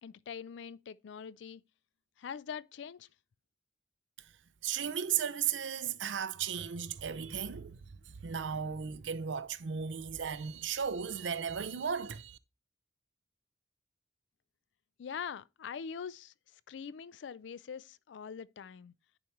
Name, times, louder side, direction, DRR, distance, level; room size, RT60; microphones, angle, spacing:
voice 1, 0.0-1.6 2.2-3.1 15.0-16.3 16.7-18.9, left 7 dB, 75° left, 0.4 m, -43 dB
voice 2, 4.6-7.8 8.2-12.4, right 7 dB, 85° right, 0.6 m, -35 dB
10.0 x 4.5 x 3.0 m
head